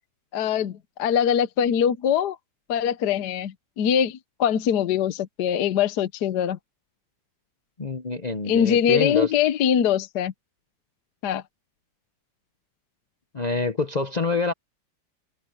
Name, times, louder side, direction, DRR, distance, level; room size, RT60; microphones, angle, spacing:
voice 1, 0.3-2.4 2.7-6.6 8.5-10.3 11.2-11.4, left 8 dB, 65° left, 1.3 m, -23 dB
voice 2, 7.8-9.3 13.3-14.5, left 3 dB, 45° left, 0.5 m, -26 dB
omnidirectional pair, 2.1 m